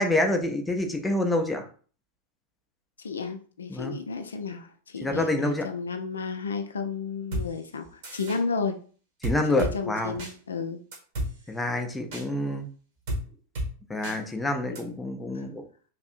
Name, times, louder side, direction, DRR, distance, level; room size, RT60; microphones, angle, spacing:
voice 1, 0.0-1.7 3.7-4.0 5.0-5.6 9.2-10.1 11.5-12.7 13.9-15.6, left 1 dB, 10° left, 4 dB, 0.5 m, -27 dB
voice 2, 3.0-8.7 9.6-10.8 15.3-15.4, left 5 dB, 70° left, 7 dB, 0.3 m, -32 dB
sound 1, 7.3-7.5 8.0-8.4 9.2-9.7 10.2-10.3 10.9-11.3 12.1-12.2 13.1-13.2 13.6-13.7 14.0-14.2 14.8-14.9, equal, 55° right, 1.2 m, -30 dB
3.2 x 2.5 x 2.5 m, 0.41 s
figure-of-eight pair, 90°, 0 cm